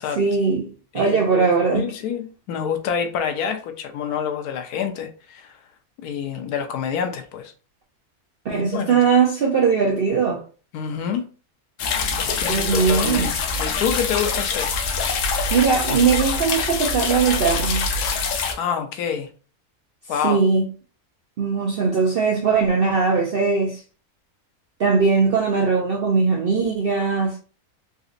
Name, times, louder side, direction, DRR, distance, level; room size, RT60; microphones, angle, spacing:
voice 1, 0.2-1.8 8.4-10.4 12.5-13.3 15.5-17.8 20.2-20.6 21.4-23.8 24.8-27.4, right 5 dB, 70° right, 0.5 m, -20 dB
voice 2, 0.9-5.6 6.0-7.5 8.5-9.0 10.7-11.3 12.3-14.7 18.5-19.3 20.1-20.4, left 7 dB, 85° left, 1.1 m, -27 dB
sound 1, 11.8-18.5, left 4 dB, 65° left, 0.9 m, -24 dB
3.8 x 2.5 x 2.5 m
omnidirectional pair, 1.6 m